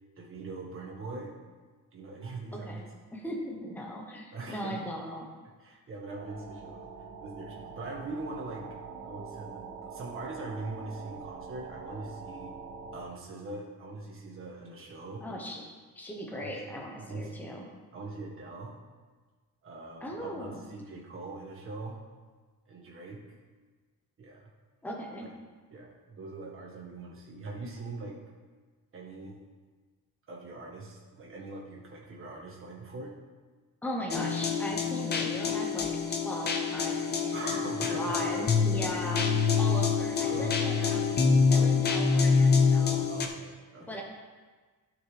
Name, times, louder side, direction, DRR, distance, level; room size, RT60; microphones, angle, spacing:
voice 1, 0.2-1.4 1.9-2.8 4.3-4.8 5.6-6.9 7.2-8.7 9.0-12.5 12.9-15.2 16.3-17.4 17.9-18.8 19.6-22.0 22.7-23.2 24.2-24.5 25.7-28.2 28.9-29.4 30.3-33.2 37.3-38.3 38.8-38.9 40.2-40.7 43.1-44.0, right 3 dB, 35° right, -2 dB, 1.6 m, -42 dB
voice 2, 2.5-2.9 3.1-5.3 15.2-15.6 15.9-17.7 20.0-20.6 24.8-25.3 33.8-35.9 36.2-37.6 37.9-39.3 39.6-41.2 41.5-43.1 43.8-44.0, equal, 5° left, 0 dB, 0.9 m, -38 dB
sound 1, 6.2-13.0, right 5 dB, 65° right, 1.4 m, -44 dB
sound 2, 34.1-43.3, left 5 dB, 30° left, 0.6 m, -26 dB
12.0 x 5.9 x 3.3 m, 1.4 s
cardioid pair, 165°, 35 cm